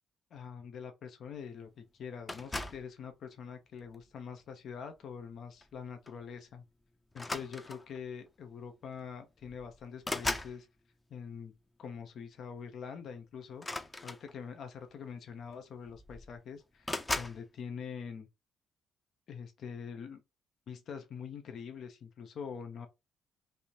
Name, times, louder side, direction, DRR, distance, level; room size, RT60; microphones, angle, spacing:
voice 1, 0.3-6.6 7.1-10.7 11.1-11.5 11.8-18.3 19.3-20.2 20.7-22.9, left 6 dB, 65° left, 0.7 m, -44 dB
sound 1, 2.3-2.9 3.8-4.1 5.6-5.8 6.1-6.2 7.1-8.0 9.0-9.1 9.4-10.6 13.5-14.6 15.5-15.6 15.9-16.4 16.8-17.4, left 2 dB, 20° left, 0.6 m, -38 dB
3.4 x 2.7 x 2.8 m
cardioid pair, 90°, 0 cm